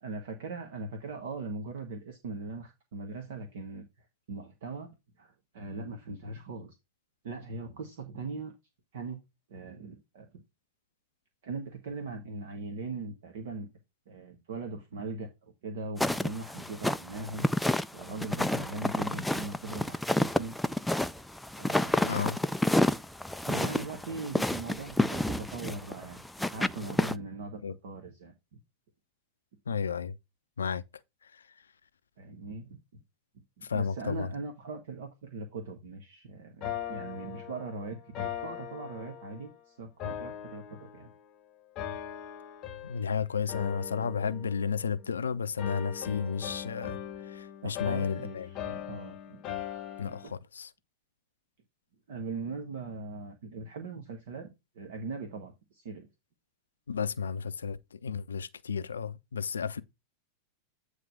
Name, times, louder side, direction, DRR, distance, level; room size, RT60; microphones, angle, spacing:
voice 1, 0.0-4.9 5.2-6.7 7.2-8.5 8.9-9.2 9.5-10.4 11.4-13.7 14.1-17.5 17.9-20.6 21.6-22.2 23.4-26.2 26.5-28.6 32.2-33.0 33.6-41.1 47.6-49.4 50.0-50.3 52.1-54.5 54.7-56.1, right 3 dB, 55° right, 1.3 m, -40 dB
sound 1, 16.0-27.1, left 1 dB, 5° left, 0.4 m, -29 dB
voice 2, 22.0-22.4 27.6-27.7 29.7-30.1 30.6-30.8 33.7-34.3 42.8-47.0 47.3-48.5 50.0-50.7 56.9-59.8, left 6 dB, 70° left, 0.5 m, -32 dB
sound 2, 36.6-39.5 40.0-41.3 41.8-43.1 43.5-45.2 45.6-50.3, left 10 dB, 35° left, 0.9 m, -40 dB
9.0 x 3.2 x 5.5 m
figure-of-eight pair, 90°, 0 cm